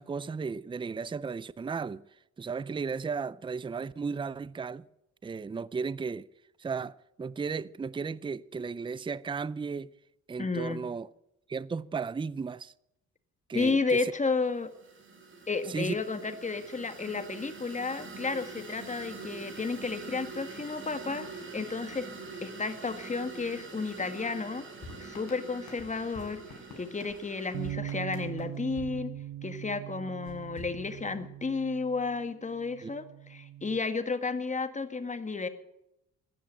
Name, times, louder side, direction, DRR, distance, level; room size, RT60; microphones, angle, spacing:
voice 1, 0.0-2.0 2.4-4.8 5.2-6.3 6.6-9.9 10.3-11.1 11.5-12.7 13.5-14.0 15.7-16.0 32.8-32.9, right 5 dB, 15° right, 0.5 m, -35 dB
voice 2, 10.4-10.8 13.5-14.7 15.5-22.1 22.4-24.7 25.0-26.4 26.8-29.1 29.4-35.5, left 4 dB, 25° left, 1.9 m, -32 dB
sound 1, 14.4-27.7, right 4 dB, 40° right, 6.1 m, -45 dB
sound 2, 24.8-29.7 30.2-31.5, left 3 dB, 65° left, 6.1 m, -50 dB
Bass guitar, 27.5-33.8, right 13 dB, 85° right, 1.0 m, -41 dB
15.0 x 10.5 x 9.0 m
cardioid pair, 90°, 30 cm